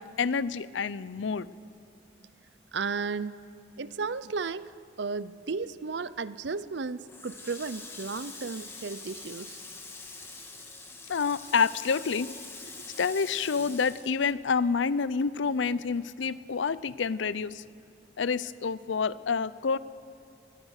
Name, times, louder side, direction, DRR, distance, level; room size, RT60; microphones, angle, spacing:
voice 1, 0.0-1.5 11.1-12.3 13.0-17.6 18.2-19.8, left 5 dB, 85° left, 18 dB, 0.5 m, -28 dB
voice 2, 2.7-3.4 3.8-4.7 5.0-9.6, right 4 dB, 70° right, 16 dB, 0.6 m, -34 dB
Water tap faucet, 7.0-14.9 15.2-16.5, left 3 dB, 15° left, 1.7 m, -45 dB
22.5 x 19.5 x 6.5 m, 2.4 s
head